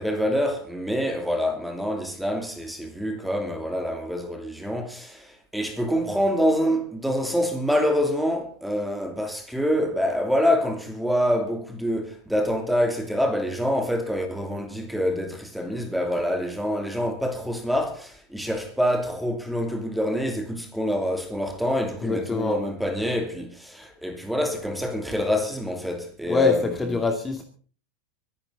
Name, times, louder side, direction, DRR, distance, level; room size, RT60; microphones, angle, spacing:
voice 1, 0.0-27.0, equal, ahead, 2.8 m, -26 dB
voice 2, 22.0-22.6 26.3-27.4, left 3 dB, 15° left, 2.3 m, -25 dB
24.0 x 11.0 x 3.9 m
supercardioid pair, 135°, 0 cm